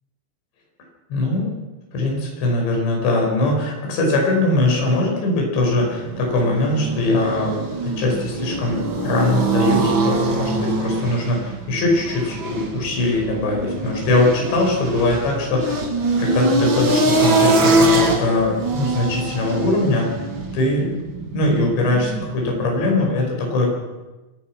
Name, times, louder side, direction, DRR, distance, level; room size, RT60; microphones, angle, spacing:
voice 1, 1.1-1.5 1.9-15.8 16.2-20.3 20.5-21.0 21.3-23.7, left 2 dB, 70° left, 0 dB, 7.5 m, -21 dB
sound 1, 5.6-22.9, right 2 dB, 40° right, 2.0 m, -23 dB
26.0 x 16.5 x 6.2 m, 1.1 s
omnidirectional pair, 5.3 m